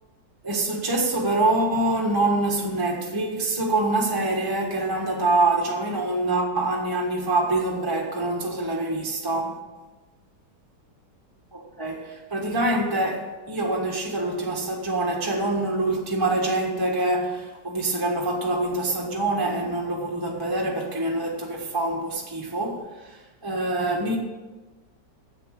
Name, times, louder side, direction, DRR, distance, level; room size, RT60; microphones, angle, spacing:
voice 1, 0.4-9.6 11.5-24.2, right 2 dB, 15° right, 1.3 m, -25 dB
10.0 x 8.3 x 7.6 m
omnidirectional pair, 2.0 m